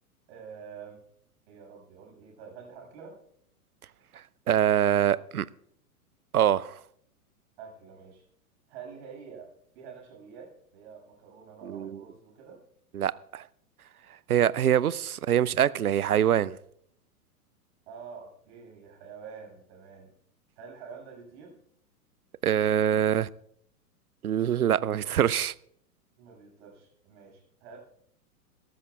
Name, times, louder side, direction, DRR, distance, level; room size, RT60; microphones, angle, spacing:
voice 1, 0.3-1.0 1.5-3.2 7.6-8.2 8.7-9.5 9.7-12.6 17.9-20.1 20.6-21.5 26.2-27.8, right 6 dB, 45° right, 6.6 m, -47 dB
voice 2, 4.5-5.4 6.3-6.7 11.7-12.0 12.9-13.4 14.3-16.6 22.4-23.3 24.2-25.5, right 10 dB, 75° right, 0.6 m, -24 dB
21.5 x 13.0 x 2.4 m
figure-of-eight pair, 105°, 45 cm